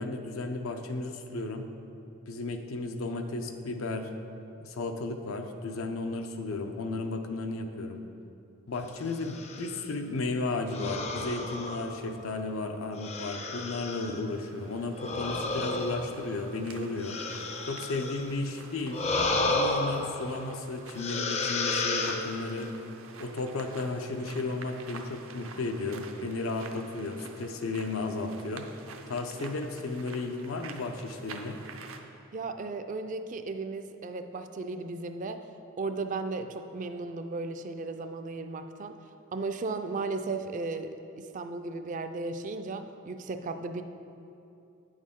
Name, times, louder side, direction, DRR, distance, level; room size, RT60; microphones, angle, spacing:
voice 1, 0.0-1.7 2.3-4.1 4.6-8.0 8.7-17.2 17.6-19.0 19.5-22.7 23.2-28.7 29.1-31.6, left 3 dB, 85° left, 5 dB, 0.6 m, -34 dB
sound 1, 9.1-9.8 10.7-12.3 13.0-14.2 14.9-18.3 18.9-20.6 21.0-22.7, left 2 dB, 30° left, 0.5 m, -32 dB
sound 2, 14.0-32.0, right 4 dB, 80° right, 0.6 m, -49 dB
voice 2, 32.3-35.4 35.8-39.0 39.3-43.8, right 3 dB, 40° right, 8 dB, 0.4 m, -35 dB
9.0 x 6.4 x 3.7 m, 2.7 s
head